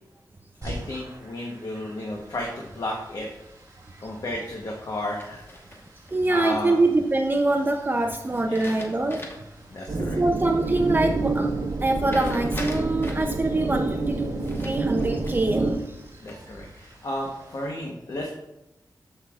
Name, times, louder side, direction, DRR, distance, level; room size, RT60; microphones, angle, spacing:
voice 1, 0.6-3.3 4.0-5.4 6.3-6.8 8.5-8.8 9.7-10.2 16.2-18.3, left 1 dB, 55° left, -1 dB, 1.0 m, -33 dB
sound 1, 0.6-17.7, right 1 dB, 45° right, 2.7 m, -48 dB
sound 2, 5.2-6.1 8.3-9.6 10.0-10.1 12.1-13.4 14.4-15.6 16.0-16.6, left 1 dB, 30° left, 1.1 m, -41 dB
voice 2, 6.1-9.3 10.0-11.5 11.8-14.4 14.6-16.0 16.3-16.5, right 2 dB, 25° right, 3 dB, 0.5 m, -24 dB
sound 3, 9.9-15.7, right 3 dB, 65° right, 0.9 m, -28 dB
13.0 x 5.4 x 2.4 m, 0.93 s
wide cardioid pair, 120°, 7 cm